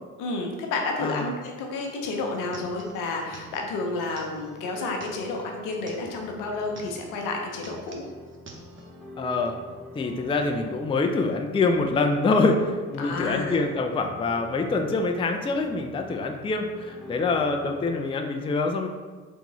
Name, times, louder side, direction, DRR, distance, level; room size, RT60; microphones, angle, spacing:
voice 1, 0.2-8.0 13.0-13.7, left 3 dB, 70° left, 1 dB, 0.8 m, -30 dB
voice 2, 1.0-1.3 9.2-9.6 9.9-18.9, left 3 dB, 15° left, 4 dB, 0.4 m, -25 dB
sound 1, 1.8-6.3 6.6-7.2 7.5-8.9, right 2 dB, 35° right, 0.9 m, -48 dB
sound 2, 2.0-18.0, left 1 dB, ahead, 1.2 m, -46 dB
3.5 x 3.5 x 3.1 m, 1.4 s
hypercardioid pair, 50°, 33 cm